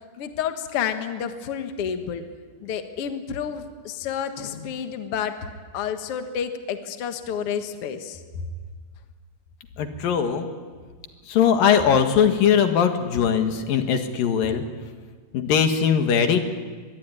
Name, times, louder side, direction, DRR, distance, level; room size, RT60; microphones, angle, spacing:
voice 1, 0.2-2.2 2.6-8.2, left 8 dB, 50° left, 7 dB, 2.1 m, -30 dB
voice 2, 9.8-10.5 11.3-14.6 15.3-16.4, left 7 dB, 85° left, 6 dB, 3.5 m, -20 dB
24.5 x 21.5 x 9.7 m, 1.5 s
omnidirectional pair, 3.9 m